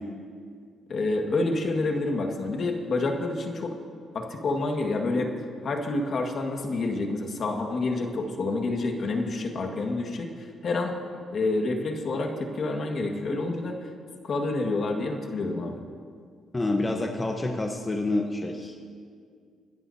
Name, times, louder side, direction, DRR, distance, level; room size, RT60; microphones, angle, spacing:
voice 1, 0.9-3.8 4.1-5.3 5.6-10.9 11.3-13.9 14.2-15.8, left 2 dB, 50° left, 3 dB, 1.7 m, -28 dB
voice 2, 16.5-18.9, left 2 dB, 20° left, 2 dB, 1.0 m, -28 dB
24.5 x 13.0 x 2.8 m, 2.1 s
cardioid pair, 90°, 0 cm